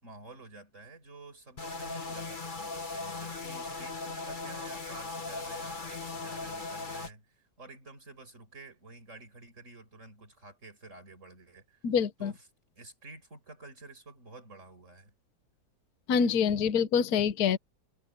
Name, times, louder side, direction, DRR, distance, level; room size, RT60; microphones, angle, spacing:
voice 1, 0.0-11.8 12.2-12.4 12.8-15.1, right 2 dB, 40° right, 6.0 m, -50 dB
sound 1, 1.6-7.1, left 3 dB, 25° left, 1.6 m, -38 dB
voice 2, 11.8-12.3 16.1-17.6, left 7 dB, 55° left, 1.4 m, -26 dB
omnidirectional pair, 2.1 m